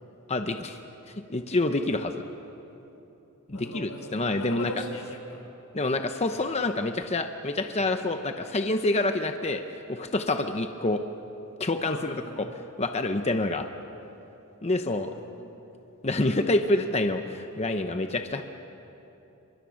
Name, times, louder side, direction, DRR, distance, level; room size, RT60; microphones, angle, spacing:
voice 1, 0.3-0.8 1.3-2.1 3.5-4.7 5.7-9.6 9.9-11.0 11.6-12.5 12.8-13.7 14.6-15.1 16.0-18.4, left 2 dB, 30° left, 7 dB, 0.8 m, -27 dB
voice 2, 3.5-5.4 6.3-6.5 11.8-12.4 15.1-15.4, left 2 dB, 90° left, 3 dB, 4.3 m, -40 dB
28.0 x 25.0 x 6.4 m, 3.0 s
head